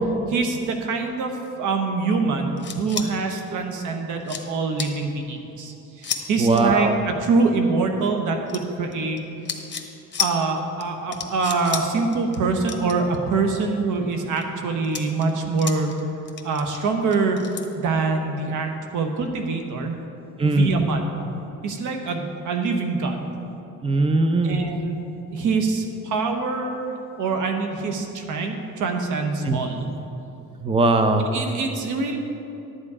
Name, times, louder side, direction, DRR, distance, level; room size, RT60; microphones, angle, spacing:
voice 1, 0.3-1.3 1.6-6.9 7.2-9.2 10.2-15.9 16.4-17.4 17.7-20.0 20.4-21.3 21.6-23.3 24.4-26.8 27.2-29.9 31.2-32.2, right 4 dB, 80° right, 4 dB, 1.1 m, -24 dB
sound 1, 2.6-3.1 3.7-3.8 4.2-4.4 4.8-4.9 6.0-6.2 6.5-6.6 8.5-9.2 9.5-9.9 10.1-10.3 10.8-10.9 11.1-11.9 12.1-12.4 12.6-13.7 14.1-14.4 14.8-16.0 16.3-17.6, left 7 dB, 35° left, 1.0 m, -31 dB
voice 2, 6.4-7.0 20.4-20.7 23.8-24.6 29.5-29.6 30.6-31.3, right 2 dB, 20° right, 7 dB, 0.7 m, -19 dB
11.0 x 7.4 x 4.9 m, 2.8 s
cardioid pair, 90°, 30 cm